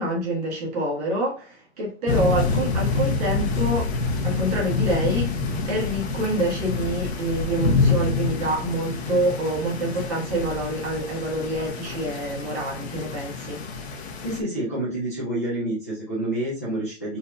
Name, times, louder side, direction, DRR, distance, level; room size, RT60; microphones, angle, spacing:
voice 1, 0.0-3.9 4.2-5.3 5.7-13.6, right 1 dB, 35° right, 1.4 m, -26 dB
sound 1, 2.1-14.4, left 4 dB, 70° left, 0.9 m, -27 dB
voice 2, 14.2-17.2, right 1 dB, 15° left, 0.3 m, -28 dB
3.9 x 2.7 x 2.2 m
hypercardioid pair, 175°, 33 cm